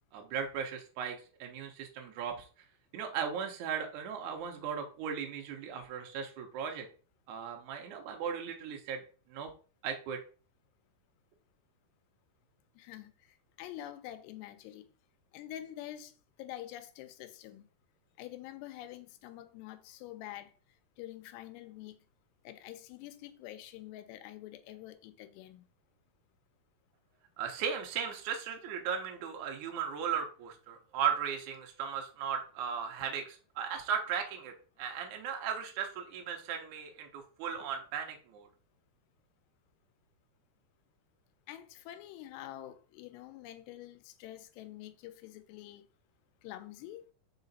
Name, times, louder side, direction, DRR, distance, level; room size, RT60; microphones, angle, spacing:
voice 1, 0.1-2.4 2.9-6.9 7.3-9.0 9.3-9.5 9.8-10.2 27.4-38.5, right 7 dB, 90° right, 1.7 m, -37 dB
voice 2, 12.8-13.1 13.6-14.9 15.3-16.1 16.4-17.7 18.2-20.5 21.0-22.0 22.4-25.6 41.5-45.9 46.4-47.0, left 13 dB, 90° left, 2.8 m, -46 dB
5.0 x 4.8 x 4.0 m
omnidirectional pair, 4.7 m